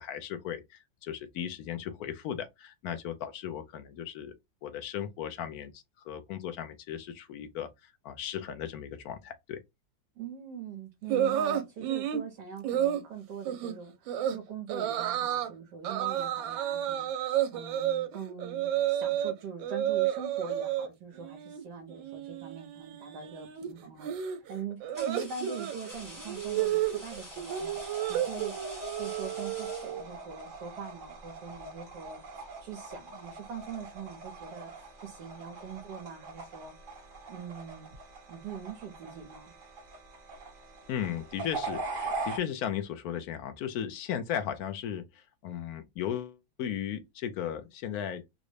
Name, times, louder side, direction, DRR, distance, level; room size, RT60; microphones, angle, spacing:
voice 1, 0.0-4.3 4.6-9.6 40.9-48.2, left 9 dB, 75° left, 0.8 m, -36 dB
voice 2, 10.1-37.9 38.3-39.5, right 6 dB, 65° right, 1.2 m, -43 dB
sound 1, 11.1-12.2 12.6-13.0 13.5-13.7 14.1-14.4 14.7-15.5 15.8-19.3 19.6-20.9 21.2-21.6 21.9-30.1, right 11 dB, 85° right, 1.4 m, -31 dB
sound 2, 23.3-23.6 24.4-30.4, left 1 dB, 15° left, 0.6 m, -48 dB
sound 3, 25.9-42.4, right 3 dB, 40° right, 0.8 m, -42 dB
3.8 x 2.1 x 3.1 m
omnidirectional pair, 2.1 m